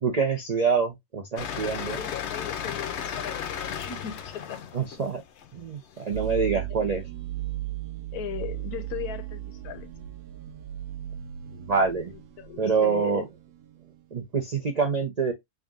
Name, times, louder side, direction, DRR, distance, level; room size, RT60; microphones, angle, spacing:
voice 1, 0.0-2.0 4.7-5.2 5.5-7.1 11.5-12.1 12.6-13.2 14.1-15.3, right 5 dB, 60° right, 0.4 m, -26 dB
sound 1, 1.4-6.3, left 8 dB, 60° left, 0.7 m, -35 dB
voice 2, 1.9-4.6 8.1-9.9 12.1-13.3, left 10 dB, 80° left, 1.2 m, -37 dB
sound 2, 6.1-14.1, right 14 dB, 85° right, 1.1 m, -37 dB
3.6 x 2.6 x 3.5 m
omnidirectional pair, 1.6 m